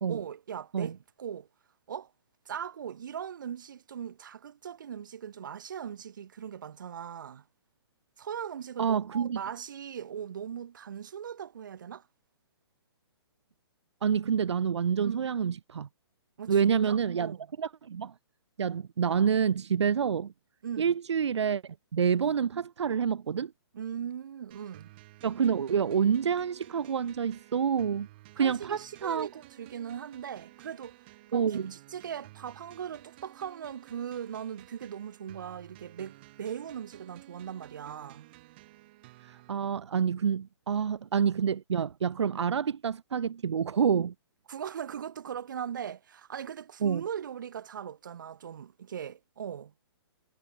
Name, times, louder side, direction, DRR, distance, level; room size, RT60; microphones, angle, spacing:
voice 1, 0.1-1.5 1.9-2.1 2.5-7.4 8.2-12.0 15.0-15.3 16.4-17.5 20.6-20.9 23.7-24.9 28.4-31.0 31.3-38.3 44.5-49.7, right 8 dB, 45° right, 1.7 m, -39 dB
voice 2, 8.8-9.4 14.0-15.9 16.5-18.1 18.6-20.3 20.8-23.5 25.2-28.1 28.4-29.3 31.3-31.7 39.3-44.1 46.8-47.0, right 7 dB, 85° right, 0.8 m, -28 dB
sound 1, 24.5-39.5, right 19 dB, 20° right, 1.9 m, -54 dB
hypercardioid pair, 175°, 14 cm